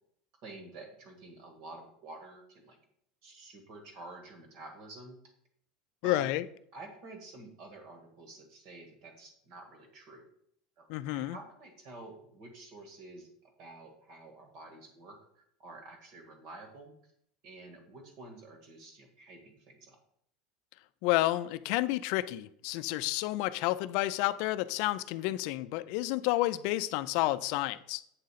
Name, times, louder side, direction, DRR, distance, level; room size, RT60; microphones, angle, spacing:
voice 1, 0.4-2.8 3.2-5.2 6.0-6.3 6.7-10.2 10.8-13.3 13.6-16.9 17.4-20.0, right 2 dB, 50° right, 1.6 m, -49 dB
voice 2, 6.0-6.4 10.9-11.4 21.0-28.0, left 17 dB, 55° left, 0.4 m, -30 dB
8.3 x 3.9 x 5.6 m
supercardioid pair, 170°, 0 cm